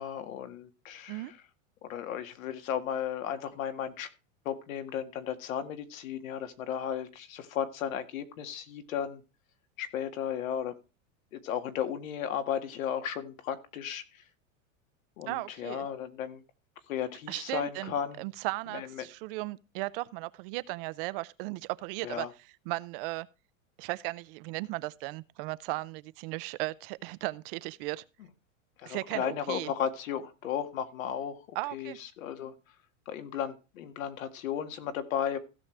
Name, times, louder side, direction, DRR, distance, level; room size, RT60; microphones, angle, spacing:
voice 1, 0.0-1.4 1.8-4.1 4.5-9.2 9.8-10.7 11.3-14.2 15.2-16.4 16.9-18.2 18.7-19.1 22.0-22.3 28.8-32.5 33.1-35.4, left 9 dB, 80° left, 1.9 m, -35 dB
voice 2, 15.3-15.9 17.3-22.3 22.7-23.3 23.8-28.0 28.9-29.7 31.6-32.0, right 21 dB, 45° right, 0.5 m, -36 dB
16.0 x 6.3 x 3.3 m
supercardioid pair, 140°, 40 cm